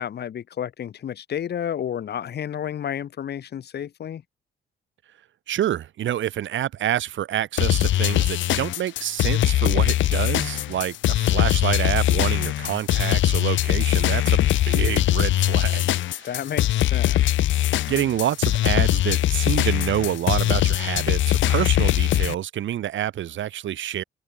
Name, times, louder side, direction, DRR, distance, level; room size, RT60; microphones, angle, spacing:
voice 1, 0.0-4.2 16.2-17.2, left 9 dB, 55° left, 1.7 m, -31 dB
voice 2, 5.5-16.3 17.9-24.0, right 11 dB, 70° right, 4.6 m, -27 dB
sound 1, 7.6-22.3, left 14 dB, 75° left, 0.8 m, -21 dB
cardioid pair, 90°, 20 cm